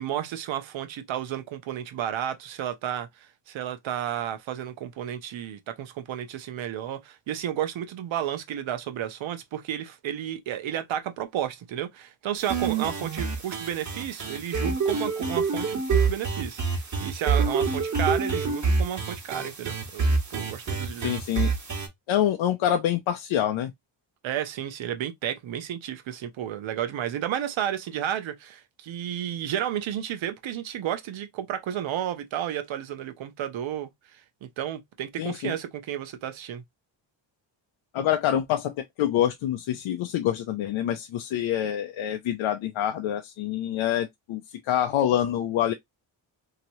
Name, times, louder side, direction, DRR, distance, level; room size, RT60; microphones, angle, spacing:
voice 1, 0.0-21.1 24.2-36.6, right 10 dB, 85° right, 0.8 m, -32 dB
sound 1, 12.4-21.9, right 4 dB, 40° right, 1.3 m, -27 dB
voice 2, 21.0-21.5 22.1-23.7 35.2-35.5 37.9-44.4 44.7-45.7, left 11 dB, 90° left, 0.6 m, -26 dB
3.0 x 2.9 x 2.7 m
cardioid pair, 105°, 46 cm